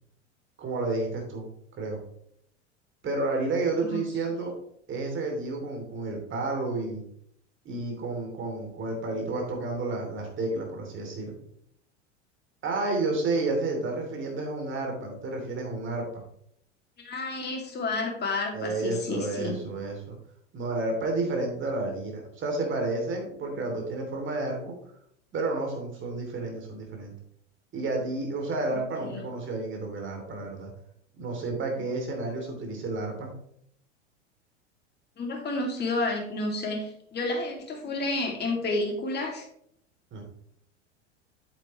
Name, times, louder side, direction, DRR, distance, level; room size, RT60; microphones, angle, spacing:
voice 1, 0.6-1.5 1.8-2.0 3.0-4.5 4.9-7.0 7.6-11.3 12.6-16.2 18.5-20.2 20.5-24.7 25.3-27.1 27.7-30.7 31.2-33.3 40.1-40.2, right 2 dB, 35° right, 1 dB, 2.9 m, -31 dB
voice 2, 17.0-19.6 29.0-29.2 35.2-39.4, left 2 dB, 30° left, 1 dB, 2.5 m, -30 dB
8.6 x 7.9 x 3.1 m, 0.70 s
hypercardioid pair, 85°, 36 cm